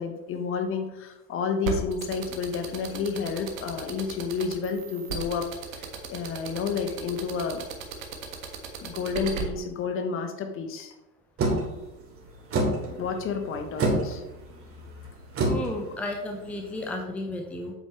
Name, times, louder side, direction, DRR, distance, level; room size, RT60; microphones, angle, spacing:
voice 1, 0.0-5.5 5.8-7.6 8.8-10.9 12.9-14.2, left 5 dB, 25° left, 7 dB, 1.1 m, -30 dB
sound 1, 1.6-9.4, right 8 dB, 55° right, 1.7 m, -35 dB
sound 2, 11.4-17.0, right 1 dB, 30° right, 2.6 m, -29 dB
voice 2, 15.4-17.7, left 1 dB, 5° left, 2 dB, 0.9 m, -33 dB
8.7 x 8.3 x 3.2 m, 0.96 s
figure-of-eight pair, 85°, 47 cm